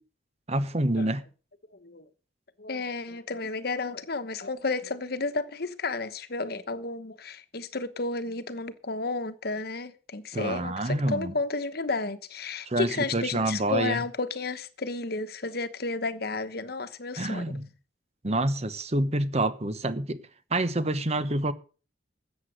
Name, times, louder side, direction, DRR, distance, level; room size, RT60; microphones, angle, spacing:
voice 1, 0.5-1.2 10.3-11.3 12.7-14.0 17.2-17.7 18.2-20.2 20.5-21.5, right 1 dB, 35° right, 1.0 m, -27 dB
voice 2, 2.6-17.4, left 3 dB, 55° left, 1.1 m, -32 dB
14.0 x 8.2 x 6.5 m
head